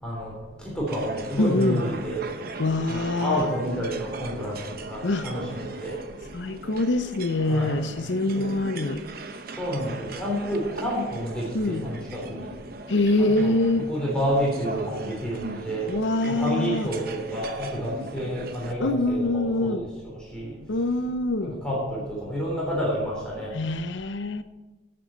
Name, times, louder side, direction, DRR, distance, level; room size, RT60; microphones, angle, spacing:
voice 1, 0.0-0.3 0.6-2.2 2.9-6.0 7.5-7.8 8.4-8.5 9.6-12.5 13.2-13.6 13.9-15.9 16.4-20.6 21.4-23.5, equal, 5° left, -5 dB, 3.6 m, -29 dB
sound 1, 0.9-18.7, right 2 dB, 50° right, 0.8 m, -39 dB
voice 2, 1.4-1.8 2.6-3.5 5.0-5.3 6.3-9.0 11.5-11.9 12.9-13.9 15.9-16.9 18.8-19.9 20.7-21.6 23.5-24.4, left 2 dB, 65° left, 11 dB, 0.7 m, -24 dB
16.5 x 7.7 x 4.4 m, 1.2 s
head